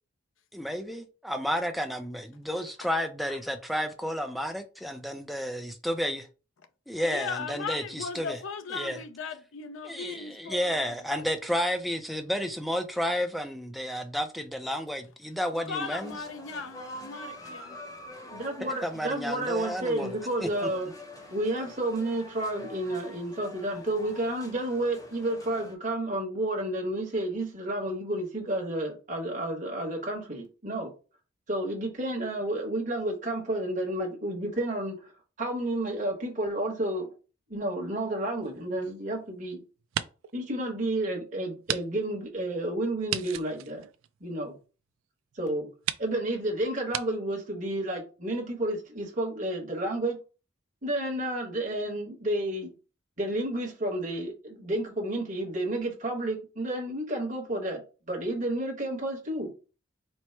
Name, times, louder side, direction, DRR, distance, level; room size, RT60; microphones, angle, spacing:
voice 1, 0.5-6.2 6.9-8.4 8.7-9.0 9.8-16.2 18.6-20.7, equal, ahead, 0.4 m, -31 dB
voice 2, 7.1-11.2 15.7-17.8, left 5 dB, 85° left, 0.6 m, -38 dB
sound 1, 15.8-25.7, left 1 dB, 20° left, 0.8 m, -46 dB
voice 3, 18.3-20.9 21.3-30.9 31.5-35.1 35.4-37.1 37.5-39.6 40.3-43.8 44.2-44.6 45.4-45.7 46.0-50.2 50.8-52.7 53.2-57.8 58.1-59.5, right 1 dB, 40° right, 1.2 m, -31 dB
Grose nose punches., 38.4-39.4 39.8-40.4 40.8-40.9 41.6-41.8 42.1-42.2 43.1-44.6 45.3-45.4 45.8-46.1 46.9-47.1, right 11 dB, 85° right, 0.3 m, -34 dB
4.5 x 2.0 x 4.4 m
head